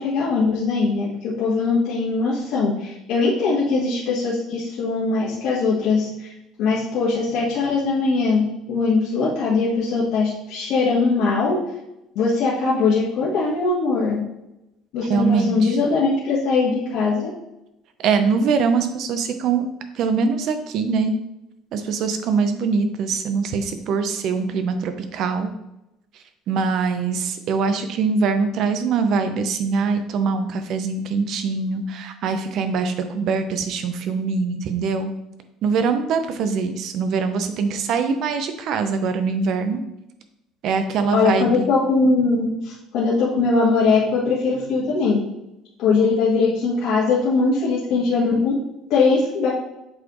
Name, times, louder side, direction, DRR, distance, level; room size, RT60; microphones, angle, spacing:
voice 1, 0.0-6.3 6.6-11.6 12.1-14.2 14.9-17.3 41.1-45.2 45.8-48.5 48.9-49.5, left 4 dB, 65° left, -7 dB, 1.5 m, -21 dB
voice 2, 15.1-15.8 18.0-19.7 19.9-21.1 21.7-25.5 26.5-35.1 35.6-39.8 40.6-41.7, right 5 dB, 50° right, 8 dB, 0.7 m, -23 dB
7.7 x 4.3 x 3.1 m, 0.90 s
cardioid pair, 155°, 0 cm